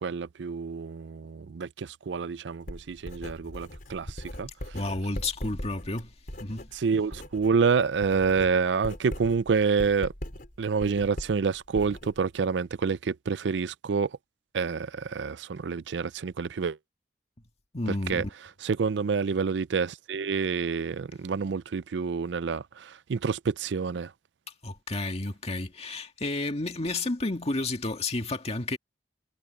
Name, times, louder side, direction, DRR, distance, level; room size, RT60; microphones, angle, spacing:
voice 1, 0.0-4.5 6.7-10.1 10.6-14.1 14.5-16.8 18.1-18.2 18.6-24.1, right 5 dB, 90° right, 0.4 m, -28 dB
Writing, 2.6-7.6 7.9-12.5, equal, 55° left, 5.1 m, -40 dB
voice 2, 4.7-6.1 6.4-6.7 17.7-18.3 24.6-28.8, left 2 dB, 35° left, 1.9 m, -31 dB
head